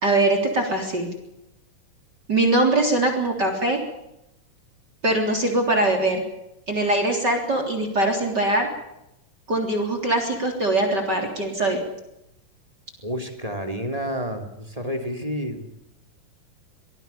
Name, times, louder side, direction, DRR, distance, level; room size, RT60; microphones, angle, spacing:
voice 1, 0.0-1.1 2.3-3.8 5.0-6.2 6.7-8.7 9.5-11.8, right 2 dB, 30° right, 5 dB, 3.9 m, -22 dB
voice 2, 13.0-15.7, equal, 10° right, 6 dB, 2.6 m, -30 dB
24.5 x 19.5 x 7.1 m, 0.86 s
omnidirectional pair, 4.0 m